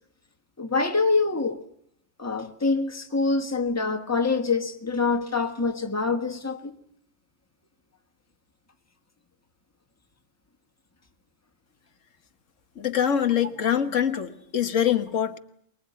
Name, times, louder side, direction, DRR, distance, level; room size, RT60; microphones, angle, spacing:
voice 1, 0.6-1.6 2.2-6.8 13.6-13.7, left 4 dB, 15° left, 1.5 m, -25 dB
voice 2, 12.8-15.4, left 9 dB, 85° left, 1.6 m, -24 dB
24.0 x 21.0 x 9.4 m
omnidirectional pair, 1.3 m